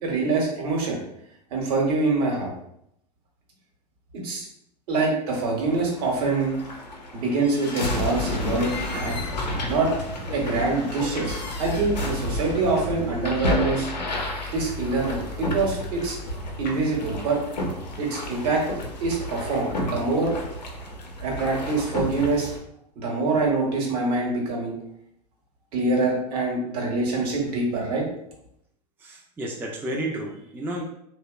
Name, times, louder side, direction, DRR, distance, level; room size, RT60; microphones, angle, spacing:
voice 1, 0.0-1.0 1.5-2.5 4.1-4.5 4.9-6.6 7.1-9.1 9.7-9.9 10.3-13.9 14.5-16.2 16.6-17.4 18.0-18.6 19.0-20.3 21.2-22.5 23.0-24.7 25.7-28.0, right 3 dB, 65° right, 0 dB, 0.9 m, -25 dB
sound 1, 5.6-22.6, left 1 dB, 90° left, 0.5 m, -31 dB
voice 2, 29.0-30.8, right 1 dB, 10° right, -1 dB, 0.3 m, -31 dB
2.8 x 2.1 x 2.2 m, 0.75 s
hypercardioid pair, 90°, 21 cm